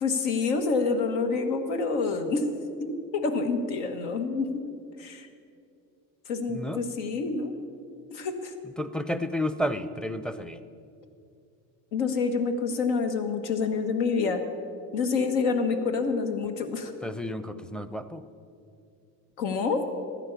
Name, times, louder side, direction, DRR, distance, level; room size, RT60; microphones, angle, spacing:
voice 1, 0.0-2.5 2.8-4.5 5.0-5.3 6.3-7.6 8.1-8.5 11.9-14.4 14.9-16.9 19.4-19.8, left 4 dB, 90° left, 6 dB, 1.5 m, -27 dB
voice 2, 6.5-6.8 8.8-10.6 17.0-18.2, left 1 dB, ahead, 11 dB, 0.5 m, -31 dB
13.5 x 10.0 x 6.9 m, 2.4 s
supercardioid pair, 105°, 35 cm